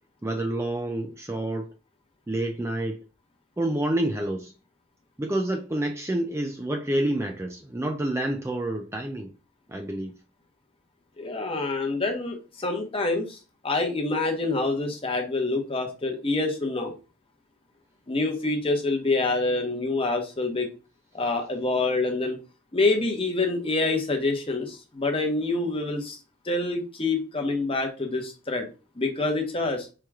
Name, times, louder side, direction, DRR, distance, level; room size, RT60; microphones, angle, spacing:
voice 1, 0.2-1.7 2.3-3.0 3.6-4.5 5.2-9.3 9.7-10.1, right 1 dB, 10° right, 0.3 m, -28 dB
voice 2, 11.2-16.9 18.1-20.7 21.1-22.4 22.7-26.2 26.4-28.7 29.0-29.9, left 3 dB, 25° left, 0.9 m, -26 dB
4.7 x 2.9 x 3.5 m
head